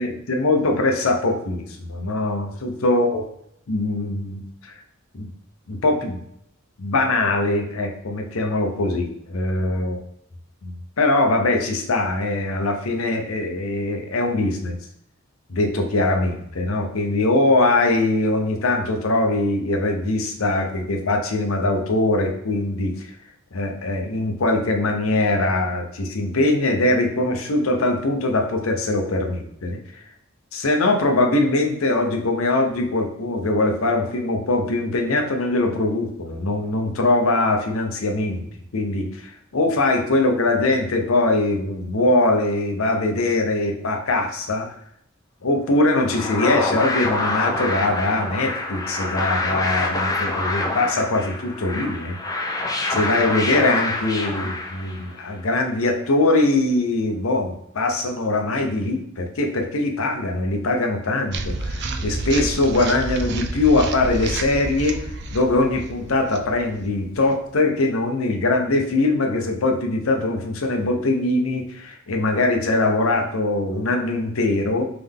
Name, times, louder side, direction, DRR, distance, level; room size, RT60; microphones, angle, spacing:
voice 1, 0.0-3.2 3.7-4.7 5.1-5.3 5.7-6.2 6.8-10.0 10.6-14.8 15.5-23.1 23.5-30.0 30.5-38.5 38.7-44.7 45.4-52.2 52.9-74.9, left 2 dB, 80° left, 4 dB, 0.7 m, -22 dB
sound 1, 45.8-55.2, left 2 dB, 15° left, 0.5 m, -26 dB
Passos de Pessoas a Conversar Parque da Cidade, 61.3-67.5, right 2 dB, 55° right, 0.4 m, -30 dB
3.6 x 3.4 x 3.6 m, 0.74 s
head